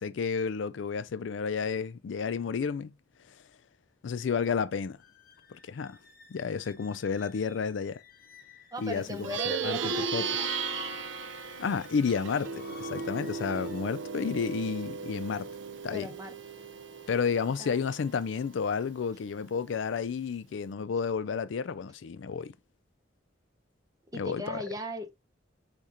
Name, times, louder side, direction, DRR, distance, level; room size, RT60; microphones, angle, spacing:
voice 1, 0.0-2.9 4.0-5.0 5.5-6.0 6.3-8.0 8.8-10.2 11.6-15.5 15.8-16.1 17.1-22.5 24.1-24.6, left 6 dB, 80° left, 0.4 m, -31 dB
sound 1, 5.0-13.8, left 6 dB, 55° left, 0.8 m, -50 dB
voice 2, 8.7-10.5 15.9-16.3 17.6-17.8 24.1-25.1, equal, 20° right, 0.8 m, -38 dB
Plucked string instrument, 9.1-18.8, right 5 dB, 75° right, 0.5 m, -36 dB
5.0 x 2.4 x 4.2 m
head